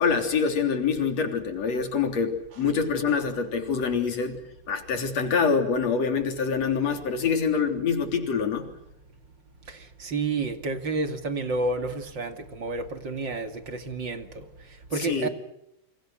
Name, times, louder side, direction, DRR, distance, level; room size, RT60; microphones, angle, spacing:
voice 1, 0.0-4.4 4.7-8.7 15.0-15.3, left 5 dB, 55° left, 4.5 m, -25 dB
voice 2, 9.7-14.4 14.9-15.3, right 3 dB, 40° right, 2.8 m, -30 dB
29.0 x 27.0 x 6.4 m
omnidirectional pair, 3.5 m